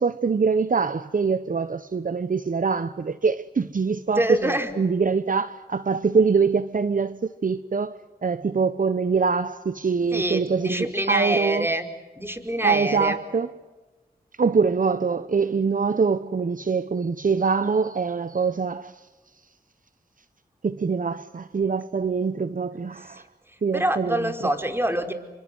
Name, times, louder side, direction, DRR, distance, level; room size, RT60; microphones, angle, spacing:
voice 1, 0.0-11.7 12.6-13.5 14.4-19.0 20.6-23.2 23.6-24.3, right 5 dB, 55° right, 1.0 m, -24 dB
voice 2, 4.1-4.7 10.1-11.9 12.2-13.2 23.1-23.2 23.7-25.1, right 1 dB, 15° right, 4.9 m, -25 dB
29.0 x 25.0 x 8.0 m
cardioid pair, 45°, 17 cm